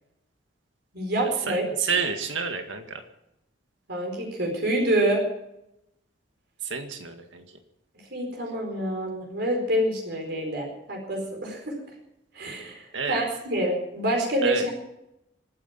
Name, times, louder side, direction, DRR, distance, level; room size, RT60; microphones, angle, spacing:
voice 1, 0.9-1.6 3.9-5.2 8.1-11.7 12.3-14.7, right 1 dB, 60° right, 1 dB, 4.6 m, -27 dB
voice 2, 1.5-3.0 6.6-7.4 12.9-13.2 14.4-14.6, right 5 dB, 85° right, 6 dB, 2.0 m, -29 dB
25.5 x 9.7 x 5.8 m, 0.83 s
head